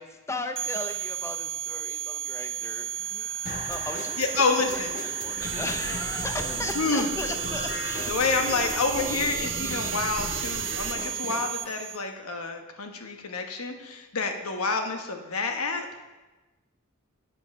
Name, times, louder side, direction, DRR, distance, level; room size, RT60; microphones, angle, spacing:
voice 1, 0.0-4.4 4.7-8.1 8.4-9.9, left 2 dB, 15° left, 6 dB, 0.5 m, -37 dB
sound 1, 0.6-12.0, right 9 dB, 25° right, 1.2 m, -33 dB
sound 2, 3.4-11.4, left 3 dB, 40° left, 1.0 m, -39 dB
voice 2, 4.2-4.9 5.9-6.0 6.7-7.1 8.1-16.0, left 4 dB, 85° left, 5 dB, 1.1 m, -28 dB
sound 3, 5.4-11.0, right 5 dB, 60° right, 0.9 m, -36 dB
8.0 x 7.1 x 5.9 m, 1.1 s
head